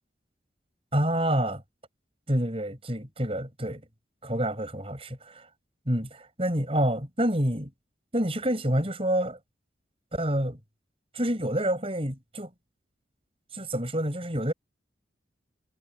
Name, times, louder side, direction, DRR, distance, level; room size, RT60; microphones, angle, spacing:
voice 1, 0.9-1.6 2.3-3.8 4.2-5.5 5.9-7.7 8.1-9.4 10.1-10.6 11.1-12.5 13.5-14.5, right 1 dB, 30° right, 7.5 m, -28 dB
head